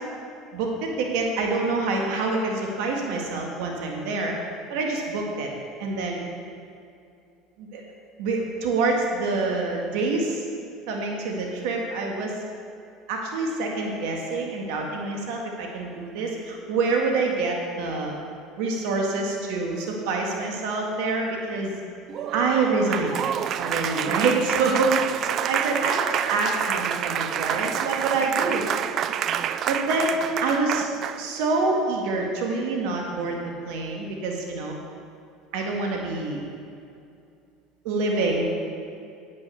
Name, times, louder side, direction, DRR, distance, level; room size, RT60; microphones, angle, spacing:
voice 1, 0.5-4.4 4.7-5.5 5.8-6.2 7.6-7.8 8.2-10.4 10.9-12.4 13.1-18.2 18.6-21.7 22.3-23.2 23.6-25.0 25.5-29.0 29.7-30.9 31.2-33.4 33.7-34.8 35.5-36.4 37.8-38.5, right 3 dB, 75° right, 1 dB, 1.8 m, -26 dB
Applause, 22.1-31.3, right 9 dB, 50° right, 0.5 m, -28 dB
9.6 x 9.0 x 6.8 m, 2.4 s
hypercardioid pair, 90°, 0 cm